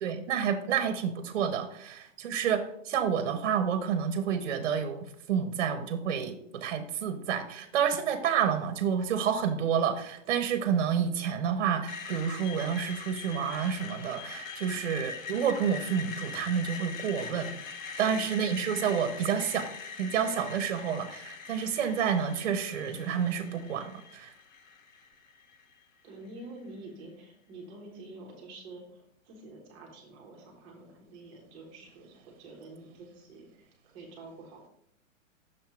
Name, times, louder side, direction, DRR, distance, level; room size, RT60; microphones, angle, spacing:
voice 1, 0.0-17.5 18.0-19.7 20.0-24.3, right 7 dB, 55° right, 7 dB, 0.7 m, -29 dB
Screech, 11.9-25.8, left 5 dB, 80° left, 0.9 m, -42 dB
voice 2, 18.0-18.3 26.0-34.7, right 2 dB, 15° right, -1 dB, 0.6 m, -48 dB
6.4 x 2.8 x 5.7 m, 0.72 s
hypercardioid pair, 165°, 40 cm